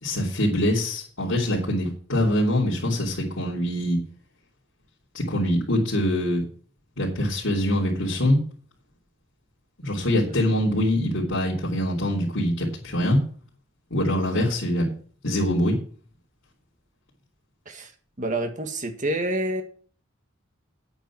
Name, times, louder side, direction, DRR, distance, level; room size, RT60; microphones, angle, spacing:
voice 1, 0.0-4.0 5.1-6.4 7.0-8.4 9.8-13.2 13.9-14.9 15.2-15.8, left 1 dB, 75° left, -7 dB, 3.3 m, -24 dB
voice 2, 18.2-19.6, right 1 dB, 40° right, 6 dB, 1.8 m, -27 dB
9.1 x 9.0 x 6.1 m, 0.43 s
head